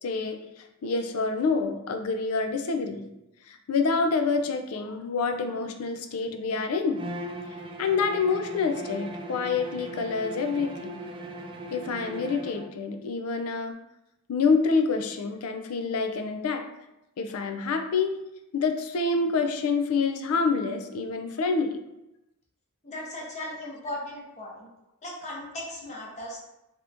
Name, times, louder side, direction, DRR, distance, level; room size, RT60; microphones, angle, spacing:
voice 1, 0.0-3.1 3.5-7.0 7.8-11.0 11.7-13.7 14.3-16.6 17.2-18.1 18.5-21.8 23.4-23.7, left 4 dB, 75° left, 6 dB, 0.4 m, -27 dB
Bowed string instrument, 6.9-12.7, right 1 dB, 20° right, 0.3 m, -38 dB
voice 2, 22.8-24.7 25.0-26.4, left 1 dB, 30° left, -3 dB, 0.8 m, -37 dB
3.4 x 2.8 x 2.5 m, 0.90 s
head